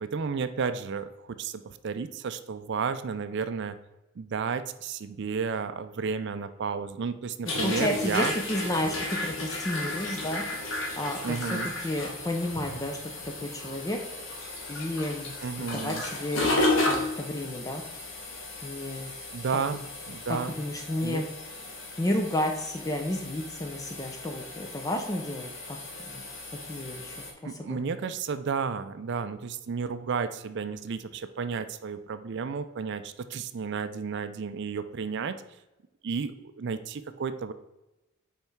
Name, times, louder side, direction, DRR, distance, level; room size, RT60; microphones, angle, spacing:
voice 1, 0.0-3.8 4.2-8.3 11.2-11.7 15.4-16.0 19.3-20.6 21.0-21.2 27.4-35.4 36.0-37.5, right 5 dB, 55° right, 11 dB, 0.4 m, -32 dB
sound 1, 7.5-27.3, left 2 dB, 65° left, 1.5 m, -34 dB
voice 2, 7.5-9.0 9.2-10.4 11.0-14.0 14.7-17.8 18.6-19.1 20.3-21.3 22.0-25.8 26.1-26.3 26.7-27.2 27.4-27.8, left 1 dB, 15° left, 3 dB, 0.5 m, -32 dB
5.5 x 4.5 x 4.5 m, 0.98 s
head